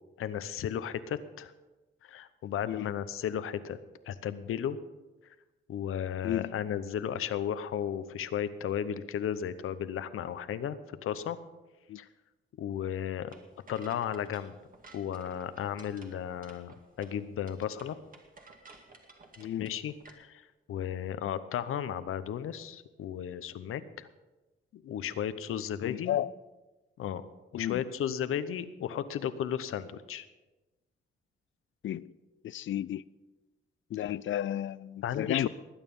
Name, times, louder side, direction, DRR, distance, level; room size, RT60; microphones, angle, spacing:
voice 1, 0.2-1.5 2.0-3.8 4.1-4.8 5.7-11.4 11.9-12.1 12.6-13.3 13.7-14.5 14.9-18.0 19.6-24.1 24.7-26.2 27.0-27.2 27.5-30.3 35.0-35.5, left 9 dB, 80° left, 0.9 m, -34 dB
sound 1, 13.3-20.1, right 3 dB, 40° right, 2.2 m, -55 dB
voice 2, 19.4-19.7 25.8-26.3 27.5-27.8 31.8-32.1 32.4-33.0 33.9-35.5, left 12 dB, 65° left, 0.4 m, -33 dB
19.5 x 9.1 x 5.4 m
cardioid pair, 90°, 21 cm